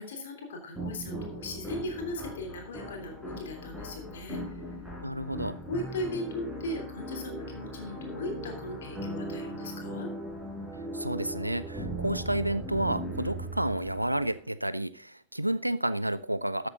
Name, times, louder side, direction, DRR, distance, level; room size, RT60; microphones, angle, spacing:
voice 1, 0.0-4.6 5.7-10.1, left 1 dB, 60° left, 3.2 m, -38 dB
sound 1, 0.7-14.4, right 1 dB, 5° left, 4.9 m, -38 dB
voice 2, 5.0-5.6 10.9-16.7, right 1 dB, 85° right, 0.5 m, -30 dB
13.0 x 8.0 x 3.8 m
figure-of-eight pair, 90°, 0 cm